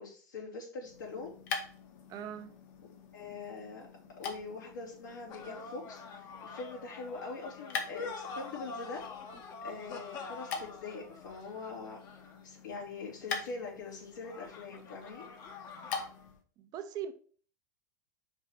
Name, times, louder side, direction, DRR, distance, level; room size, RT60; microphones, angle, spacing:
voice 1, 0.0-1.3 3.1-3.9 4.2-9.0 9.6-15.3, left 4 dB, 80° left, 3.2 m, -43 dB
sound 1, 0.8-16.4, left 5 dB, 60° left, 1.3 m, -44 dB
voice 2, 2.1-2.5 16.6-17.1, right 9 dB, 40° right, 0.8 m, -40 dB
sound 2, 5.3-12.6 14.2-16.1, left 4 dB, 40° left, 1.3 m, -46 dB
5.3 x 4.2 x 5.9 m
hypercardioid pair, 90°, 10 cm